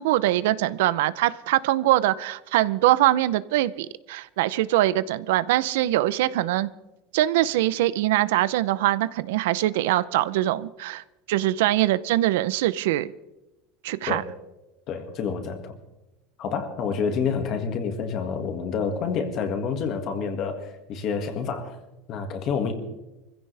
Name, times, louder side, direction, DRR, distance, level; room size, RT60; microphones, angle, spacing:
voice 1, 0.0-6.7 7.1-13.1 13.8-14.2, right 15 dB, 80° right, 17 dB, 0.6 m, -23 dB
voice 2, 14.9-15.7 16.4-21.8 22.1-22.7, left 6 dB, 35° left, 6 dB, 1.9 m, -28 dB
24.0 x 16.0 x 3.4 m, 1.0 s
cardioid pair, 175°, 0 cm